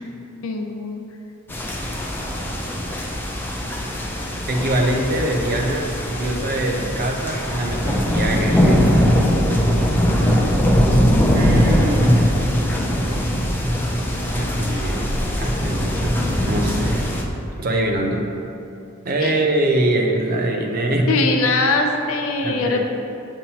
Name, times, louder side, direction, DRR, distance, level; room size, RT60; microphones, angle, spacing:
voice 1, 0.4-1.0 18.1-18.2 19.2-19.4 21.1-22.8, left 3 dB, 75° left, 4 dB, 0.5 m, -21 dB
sound 1, 1.5-17.2, equal, 10° left, 0.4 m, -20 dB
voice 2, 4.5-9.0 11.3-12.3 14.3-16.2 16.5-17.1 17.6-18.2 19.0-21.2 22.4-22.8, right 1 dB, 45° right, 1 dB, 0.6 m, -23 dB
7.0 x 5.5 x 2.9 m, 2.7 s
head